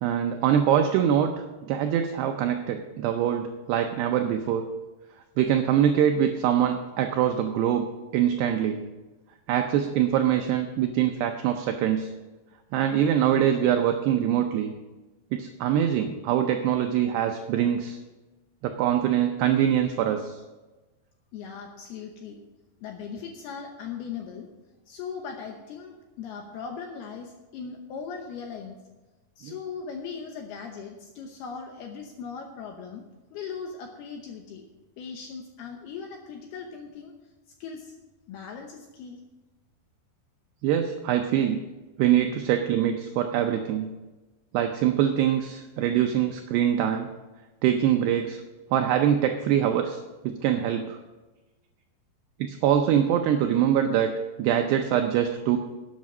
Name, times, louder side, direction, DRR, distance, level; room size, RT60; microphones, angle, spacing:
voice 1, 0.0-4.7 5.4-7.9 8.1-8.9 9.5-12.1 12.7-14.7 15.3-18.0 18.6-20.4 29.4-29.5 40.6-41.6 42.0-43.9 44.5-47.1 47.6-48.4 48.7-51.0 52.4-54.1 54.4-55.6, right 10 dB, 85° right, 5 dB, 2.4 m, -24 dB
voice 2, 21.3-22.4 22.8-24.5 24.9-28.8 29.4-33.0 33.3-34.6 35.0-37.1 37.6-37.9 38.3-39.2, left 6 dB, 75° left, 3 dB, 2.4 m, -39 dB
12.0 x 8.5 x 6.1 m, 1.2 s
omnidirectional pair, 5.6 m